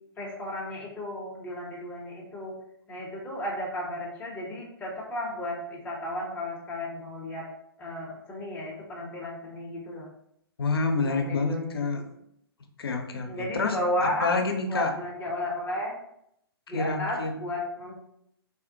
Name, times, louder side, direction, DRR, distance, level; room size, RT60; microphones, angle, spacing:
voice 1, 0.2-2.5 2.9-7.4 7.8-10.1 11.0-11.7 13.2-14.3 14.7-15.9 16.7-18.0, left 1 dB, 10° left, -3 dB, 0.7 m, -33 dB
voice 2, 10.6-12.0 12.8-14.9 16.7-17.4, left 3 dB, 65° left, 4 dB, 0.5 m, -28 dB
3.5 x 2.1 x 2.7 m, 0.75 s
figure-of-eight pair, 125°, 13 cm